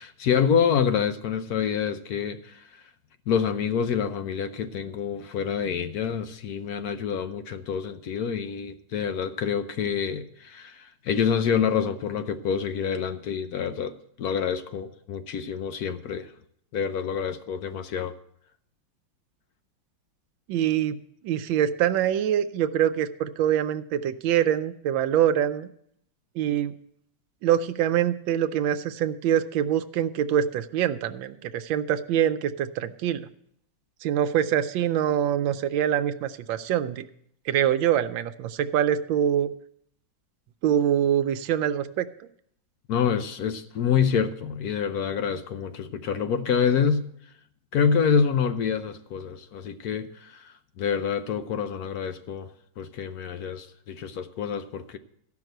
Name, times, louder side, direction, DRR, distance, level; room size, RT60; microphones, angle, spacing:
voice 1, 0.0-2.8 3.3-16.3 16.7-18.1 42.9-47.0 47.7-52.5 52.8-55.0, left 7 dB, 65° left, 1.0 m, -27 dB
voice 2, 20.5-25.7 26.4-26.8 27.4-33.3 34.0-37.1 37.5-39.5 40.6-42.1, right 10 dB, 85° right, 1.4 m, -24 dB
14.0 x 5.9 x 7.7 m
omnidirectional pair, 2.1 m